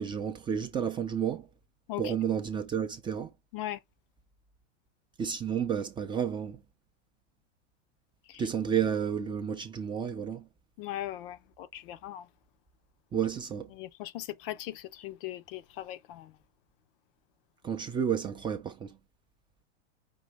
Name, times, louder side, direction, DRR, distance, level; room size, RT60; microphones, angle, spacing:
voice 1, 0.0-1.5 2.0-3.3 5.2-6.6 8.4-10.4 13.1-13.7 17.6-18.9, right 8 dB, 15° right, 0.4 m, -31 dB
voice 2, 10.8-12.3 13.7-16.3, left 14 dB, 50° left, 0.6 m, -39 dB
5.3 x 2.9 x 3.3 m
supercardioid pair, 135°, 36 cm